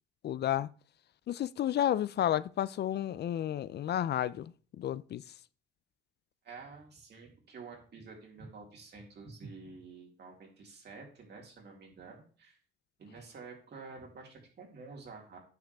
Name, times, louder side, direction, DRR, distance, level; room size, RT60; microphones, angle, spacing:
voice 1, 0.2-0.7 1.3-4.5 4.8-5.2, left 11 dB, 60° left, 0.5 m, -31 dB
voice 2, 6.4-12.6 13.0-15.4, right 4 dB, 55° right, 3.8 m, -49 dB
9.6 x 6.4 x 3.5 m
cardioid pair, 90°, 20 cm